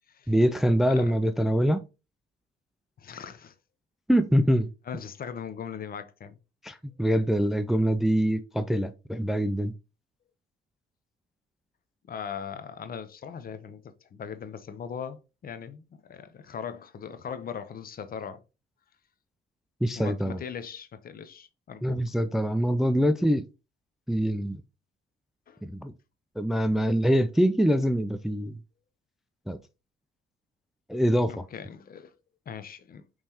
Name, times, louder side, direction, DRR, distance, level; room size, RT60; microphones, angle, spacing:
voice 1, 0.3-1.8 4.1-4.7 6.6-9.7 19.8-20.4 21.8-23.4 24.1-24.6 25.6-25.9 26.4-28.6 29.5-29.6 30.9-31.3, equal, ahead, 0.3 m, -24 dB
voice 2, 3.0-3.5 4.9-6.4 12.1-18.4 20.0-22.0 25.5-25.6 31.3-32.1 32.5-33.0, left 7 dB, 45° left, 0.7 m, -39 dB
5.4 x 3.2 x 2.9 m
cardioid pair, 90°, 20 cm